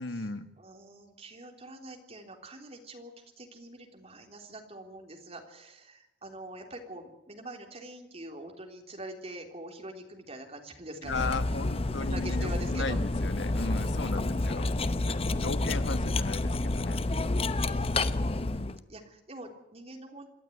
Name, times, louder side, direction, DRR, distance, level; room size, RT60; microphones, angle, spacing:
voice 1, 0.0-0.5 11.0-14.7 15.0-17.0 18.4-18.8, left 3 dB, 90° left, 11 dB, 1.3 m, -36 dB
voice 2, 0.6-11.6 11.9-13.0 14.3-14.8 17.6-20.3, right 1 dB, 35° right, 3 dB, 3.6 m, -45 dB
Cutlery silverware, 11.1-18.8, left 2 dB, 35° left, 0.8 m, -29 dB
27.0 x 12.0 x 9.7 m, 0.91 s
head